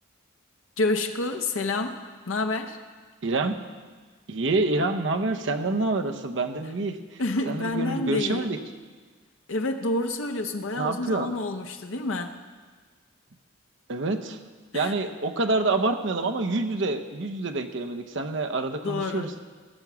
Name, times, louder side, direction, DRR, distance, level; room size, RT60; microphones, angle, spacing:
voice 1, 0.8-2.0 2.3-2.8 7.2-8.5 9.5-12.4 14.7-14.9 18.8-19.3, left 2 dB, 85° left, 5 dB, 0.8 m, -28 dB
voice 2, 3.2-3.6 4.3-7.0 7.5-8.6 10.8-11.3 13.9-14.4 14.7-19.4, right 2 dB, 65° right, 6 dB, 0.8 m, -27 dB
15.5 x 6.9 x 6.1 m, 1.5 s
head